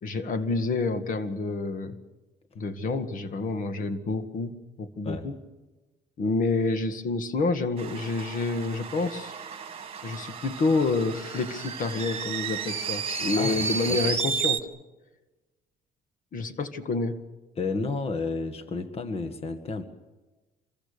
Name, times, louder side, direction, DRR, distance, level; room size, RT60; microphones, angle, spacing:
voice 1, 0.0-2.0 2.6-5.4 6.2-9.3 10.0-14.7 16.3-17.2, left 3 dB, 50° left, 9 dB, 2.0 m, -28 dB
sound 1, 7.8-14.6, right 6 dB, 35° right, 2.0 m, -32 dB
voice 2, 17.6-19.8, left 3 dB, 35° left, 7 dB, 1.8 m, -31 dB
27.0 x 22.5 x 6.9 m, 1.1 s
cardioid pair, 110°, 17 cm